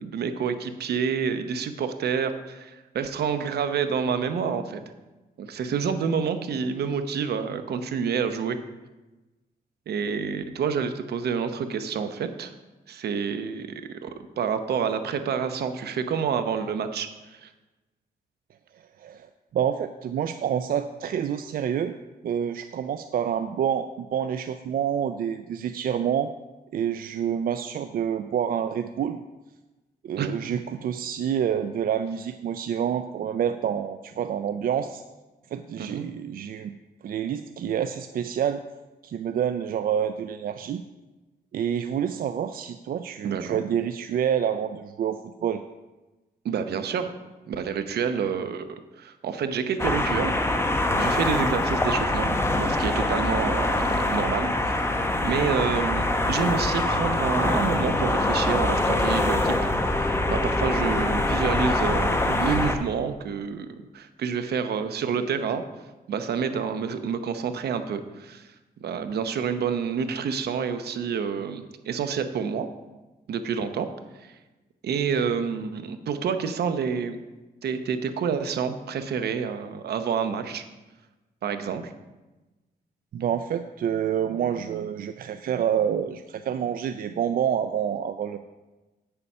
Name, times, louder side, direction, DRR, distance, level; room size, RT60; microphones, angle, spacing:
voice 1, 0.0-4.8 5.4-8.6 9.9-12.5 12.9-14.1 14.4-17.5 30.2-30.3 35.8-36.1 43.2-43.6 46.4-47.1 47.5-48.6 49.0-50.3 51.0-55.0 55.2-59.5 59.8-63.7 63.9-65.6 66.1-68.5 68.8-72.7 73.3-73.9 74.2-74.3 74.8-77.2 77.6-80.6 81.4-81.9, right 6 dB, 80° right, 9 dB, 0.8 m, -28 dB
voice 2, 19.0-22.0 22.2-26.3 26.7-29.2 30.0-35.0 35.5-36.7 37.0-38.6 39.0-40.8 41.5-45.6 83.1-88.4, right 9 dB, 60° right, 9 dB, 0.4 m, -28 dB
sound 1, 49.8-62.8, left 1 dB, 15° left, 0.9 m, -24 dB
8.6 x 6.9 x 5.5 m, 1.1 s
cardioid pair, 100°, 17 cm